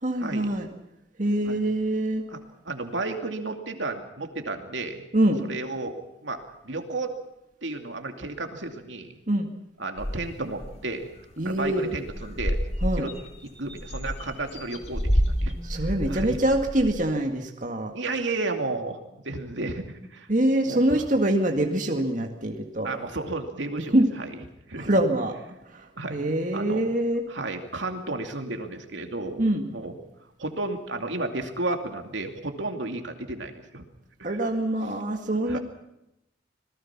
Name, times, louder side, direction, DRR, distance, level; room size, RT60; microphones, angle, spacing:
voice 1, 0.0-0.7 1.2-2.2 5.1-5.4 9.3-9.5 11.4-11.9 12.8-13.1 15.6-17.9 20.3-22.9 23.9-24.1 24.8-25.4 25.7-27.2 29.4-29.7 34.2-35.6, right 1 dB, 45° right, 3 dB, 2.0 m, -24 dB
voice 2, 2.7-5.1 5.5-5.9 6.2-7.1 7.6-9.1 9.8-11.1 11.4-12.6 13.0-13.1 13.6-15.5 16.1-16.4 17.9-19.0 19.2-20.3 20.7-21.0 22.8-24.3 24.7-24.9 26.0-26.2 26.5-26.9 27.3-29.4 29.7-29.9 30.4-33.9 35.5-35.6, right 2 dB, 80° right, 4 dB, 2.6 m, -32 dB
sound 1, 10.0-10.7 11.2-11.3 11.5-11.8 12.1-17.1, equal, 35° left, 2.5 m, -29 dB
26.5 x 19.5 x 6.0 m, 0.84 s
head